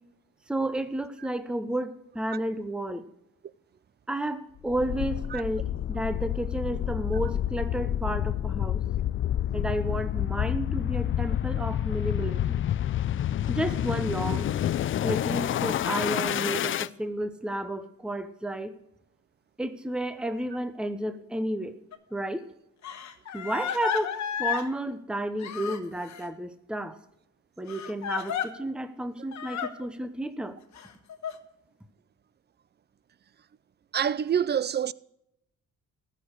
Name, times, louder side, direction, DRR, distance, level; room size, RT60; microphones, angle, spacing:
voice 1, 0.5-3.0 4.1-8.8 9.5-12.6 13.5-14.5 15.0-18.7 19.6-21.8 22.1-22.5 23.3-27.0 27.6-30.6, right 1 dB, 5° right, 0.9 m, -32 dB
sound 1, 4.7-16.9, left 11 dB, 45° left, 0.4 m, -28 dB
Crying sobbing, 21.9-22.0 22.8-24.7 25.4-26.3 27.7-28.5 29.3-29.7 30.7-31.3, left 9 dB, 65° left, 1.3 m, -33 dB
voice 2, 33.9-34.9, right 8 dB, 35° right, 0.4 m, -26 dB
14.5 x 6.7 x 6.3 m
cardioid pair, 90°, 30 cm